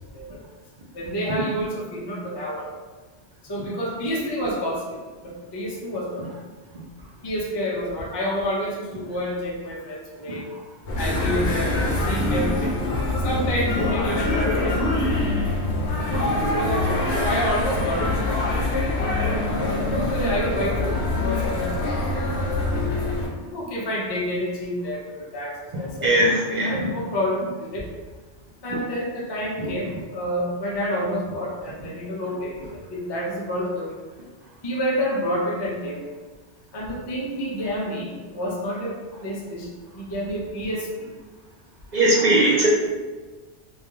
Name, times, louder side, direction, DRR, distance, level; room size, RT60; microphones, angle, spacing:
voice 1, 0.9-2.7 3.5-5.0 5.2-6.2 7.2-10.4 11.0-12.7 13.2-14.8 16.5-18.1 19.0-22.1 23.3-27.8 28.6-33.9 34.6-36.1 36.7-38.9 39.2-39.7 39.9-40.9, equal, 40° left, -4 dB, 0.3 m, -28 dB
sound 1, 10.9-23.3, left 2 dB, 75° left, 0.8 m, -24 dB
voice 2, 26.0-26.9 29.6-29.7 41.9-42.7, right 1 dB, 55° right, -5 dB, 0.5 m, -19 dB
2.3 x 2.2 x 2.9 m, 1.3 s
omnidirectional pair, 1.1 m